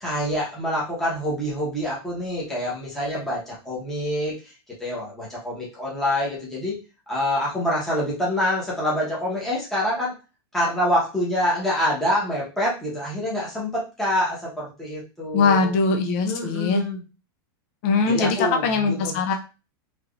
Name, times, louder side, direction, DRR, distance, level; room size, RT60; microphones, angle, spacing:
voice 1, 0.0-4.5 4.8-6.7 7.1-10.1 10.5-15.7 16.2-17.0 18.1-19.2, left 1 dB, 5° left, -7 dB, 1.0 m, -26 dB
voice 2, 15.3-16.8 17.8-19.3, left 4 dB, 35° left, 4 dB, 0.5 m, -21 dB
3.4 x 2.9 x 2.4 m, 0.30 s
supercardioid pair, 175°, 12 cm